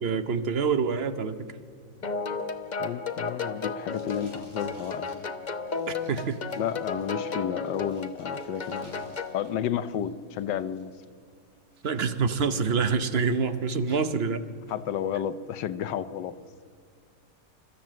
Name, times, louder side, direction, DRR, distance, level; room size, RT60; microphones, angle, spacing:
voice 1, 0.0-1.4 5.9-6.4 11.8-14.4, right 5 dB, 50° right, 11 dB, 0.7 m, -26 dB
sound 1, 2.0-9.4, left 4 dB, 40° left, 0.6 m, -34 dB
Packing tape duct tape, 2.0-9.5 9.8-10.8 11.3-11.4 11.7-12.9 13.2-14.0 14.5-14.8, right 1 dB, 30° right, 6.6 m, -54 dB
voice 2, 2.8-5.3 6.6-10.9 14.7-16.3, left 9 dB, 75° left, 13 dB, 1.4 m, -32 dB
29.0 x 13.5 x 7.5 m, 2.2 s
omnidirectional pair, 2.0 m